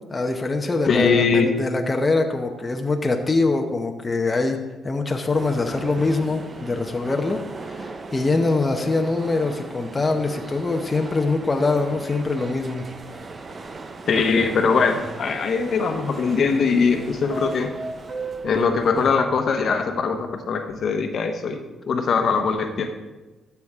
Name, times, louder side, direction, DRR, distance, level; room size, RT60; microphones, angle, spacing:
voice 1, 0.1-4.6 4.8-12.9, left 3 dB, 25° left, 3 dB, 0.9 m, -23 dB
voice 2, 0.9-1.5 14.1-17.7 18.4-21.6 21.9-22.9, left 5 dB, 55° left, 5 dB, 1.1 m, -21 dB
sound 1, 5.3-19.1, right 3 dB, 35° right, 0.8 m, -37 dB
12.5 x 7.1 x 3.7 m, 1.1 s
cardioid pair, 90°, 0 cm